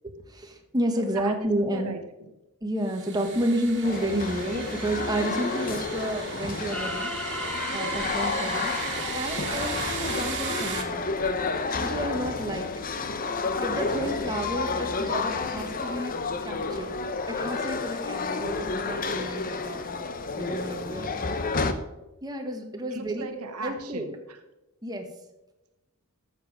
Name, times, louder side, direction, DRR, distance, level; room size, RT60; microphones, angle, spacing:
voice 1, 0.3-1.9 2.6-8.7 9.1-11.1 11.8-12.7 13.6-17.0 17.3-20.0 20.4-21.2 22.2-23.3 23.6-24.1 24.8-25.1, right 1 dB, 15° right, 3 dB, 1.3 m, -31 dB
voice 2, 0.9-2.3 22.9-24.4, right 3 dB, 80° right, 7 dB, 1.3 m, -38 dB
sound 1, 2.8-10.8, right 6 dB, 55° right, 1.9 m, -36 dB
sound 2, 3.8-21.7, left 4 dB, 40° left, 0.8 m, -30 dB
sound 3, 6.7-10.7, left 1 dB, 5° left, 0.7 m, -38 dB
13.0 x 7.1 x 4.8 m, 1.0 s
head